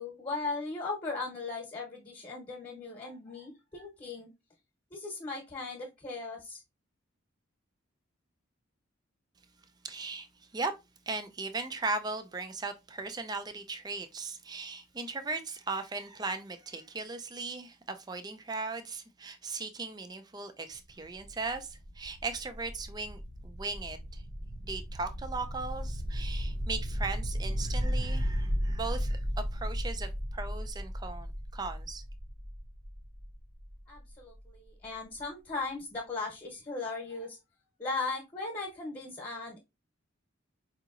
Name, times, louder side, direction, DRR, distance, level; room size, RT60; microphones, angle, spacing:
voice 1, 0.0-4.3 4.9-6.6 33.9-37.4 37.8-39.6, left 3 dB, 20° left, 1.0 m, -38 dB
voice 2, 9.8-10.3 10.5-10.7 11.1-24.2 24.6-29.2 29.5-32.0, right 3 dB, 20° right, 0.4 m, -38 dB
sound 1, 20.7-34.4, equal, 45° right, 0.7 m, -35 dB
4.9 x 2.8 x 2.4 m
head